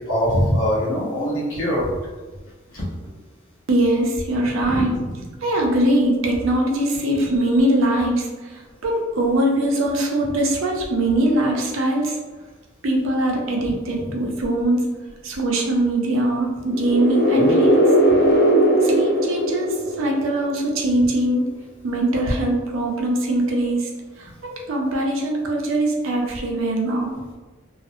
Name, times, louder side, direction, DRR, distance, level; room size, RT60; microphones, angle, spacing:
voice 1, 0.1-1.9 2.7-2.8 4.6-5.2 13.6-13.7 17.1-17.5 24.2-24.3, equal, 75° left, -5 dB, 0.8 m, -23 dB
voice 2, 3.7-5.0 5.4-12.2 12.8-14.9 15.2-17.9 18.8-21.5 21.8-23.9 24.2-27.2, right 1 dB, 75° right, 0 dB, 0.5 m, -22 dB
sound 1, 16.7-20.5, right 1 dB, 55° left, 0.5 m, -18 dB
2.4 x 2.0 x 2.5 m, 1.2 s
head